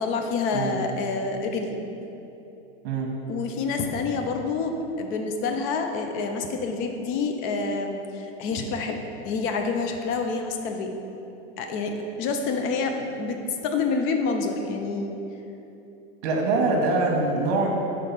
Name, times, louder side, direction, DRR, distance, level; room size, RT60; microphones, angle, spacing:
voice 1, 0.0-1.8 3.3-10.9 11.6-15.2, left 4 dB, 35° left, 4 dB, 0.6 m, -28 dB
voice 2, 16.2-17.7, right 3 dB, 65° right, 0 dB, 1.2 m, -23 dB
5.4 x 3.8 x 5.7 m, 3.0 s
supercardioid pair, 140°, 35 cm